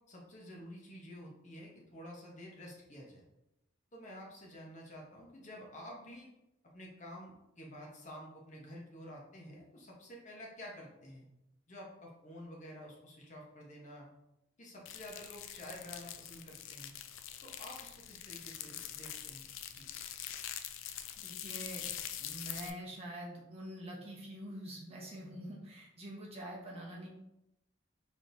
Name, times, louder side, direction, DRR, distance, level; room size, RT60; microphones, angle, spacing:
voice 1, 0.1-3.2 3.9-6.3 6.7-11.3 11.7-14.1 14.6-16.9 17.4-19.9, equal, 40° left, -2 dB, 0.9 m, -50 dB
sound 1, 14.9-22.7, left 10 dB, 90° left, 0.4 m, -44 dB
voice 2, 21.2-21.8 22.2-27.1, right 1 dB, 30° right, -2 dB, 0.9 m, -45 dB
4.4 x 3.6 x 2.6 m, 0.88 s
head